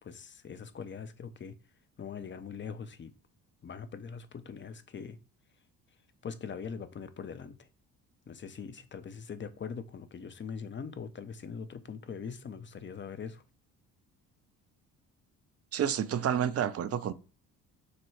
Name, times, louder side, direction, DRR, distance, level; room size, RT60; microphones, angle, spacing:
voice 1, 0.0-1.5 2.0-3.1 3.6-5.2 6.2-7.7 8.3-13.4, left 6 dB, 25° left, 0.6 m, -42 dB
voice 2, 15.7-17.1, right 9 dB, 35° right, 0.5 m, -29 dB
6.4 x 2.2 x 3.2 m
hypercardioid pair, 50°, 45 cm